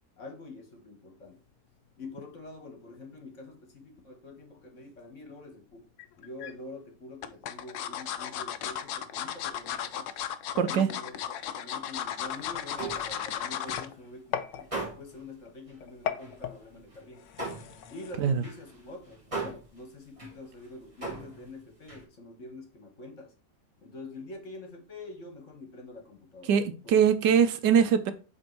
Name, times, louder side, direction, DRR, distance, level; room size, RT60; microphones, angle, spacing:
voice 1, 0.2-1.4 2.0-5.9 6.2-10.1 10.5-11.2 11.5-17.2 17.9-23.3 23.8-26.5 26.8-27.0, left 2 dB, 45° left, 1.6 m, -46 dB
sound 1, 1.3-18.1, left 10 dB, 85° left, 1.3 m, -45 dB
sound 2, 6.0-6.5 7.2-13.9 14.3-14.5 14.8-14.9, left 9 dB, 70° left, 1.1 m, -35 dB
voice 2, 10.6-10.9 18.2-18.4 26.5-28.1, right 7 dB, 80° right, 1.3 m, -22 dB
sound 3, 12.2-14.2 14.5-15.3 15.7-15.8 16.2-22.0, right 3 dB, 20° right, 2.0 m, -40 dB
7.5 x 3.6 x 4.5 m
omnidirectional pair, 1.9 m